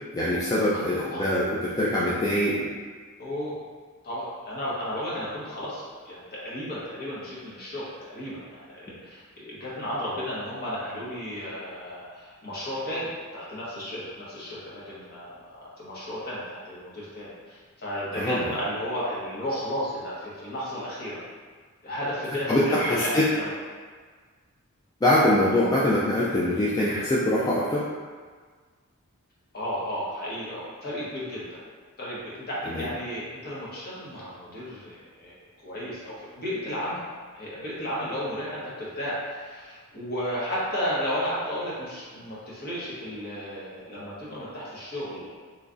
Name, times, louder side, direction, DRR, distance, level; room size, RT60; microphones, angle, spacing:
voice 1, 0.1-2.7 18.2-18.4 22.5-23.2 25.0-27.9 32.8-32.9, left 1 dB, 15° left, -7 dB, 0.3 m, -23 dB
voice 2, 0.7-1.3 3.2-3.6 4.0-21.2 21.8-23.5 29.5-31.6 32.0-35.3 35.6-37.0 37.3-45.3, equal, 45° left, -8 dB, 1.1 m, -33 dB
3.1 x 2.4 x 3.7 m, 1.5 s
head